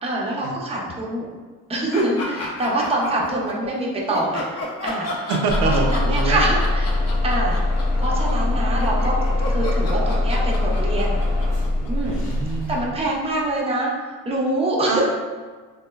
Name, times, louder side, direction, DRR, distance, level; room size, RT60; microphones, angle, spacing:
voice 1, 0.0-1.3 1.7-5.3 5.8-6.9 7.2-7.6 8.0-9.1 9.5-11.2 11.9-12.2 12.7-13.9 14.2-15.0, right 1 dB, 15° right, -3 dB, 0.5 m, -25 dB
sound 1, 1.9-3.5 4.1-12.3, left 2 dB, 40° left, 0.6 m, -32 dB
voice 2, 5.3-6.5 12.0-12.8 14.9-15.0, right 4 dB, 75° right, 1 dB, 0.5 m, -25 dB
Bus / Engine starting, 5.5-13.2, left 2 dB, 85° left, 0.8 m, -22 dB
2.9 x 2.0 x 2.2 m, 1.4 s
cardioid pair, 85°, 38 cm